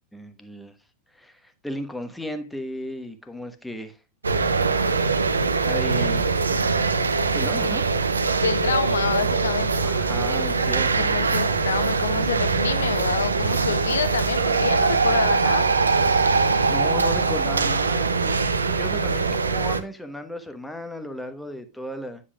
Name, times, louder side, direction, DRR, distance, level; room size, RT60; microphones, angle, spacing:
voice 1, 0.1-0.7 1.1-4.0 5.6-6.4 7.3-7.8 9.8-11.0 16.7-22.2, left 1 dB, 5° left, 1.2 m, -34 dB
sound 1, 4.2-19.8, right 4 dB, 75° right, 0.7 m, -22 dB
voice 2, 8.4-9.7 10.6-15.6, left 7 dB, 65° left, 0.6 m, -28 dB
9.9 x 7.4 x 2.3 m
figure-of-eight pair, 90°, 0 cm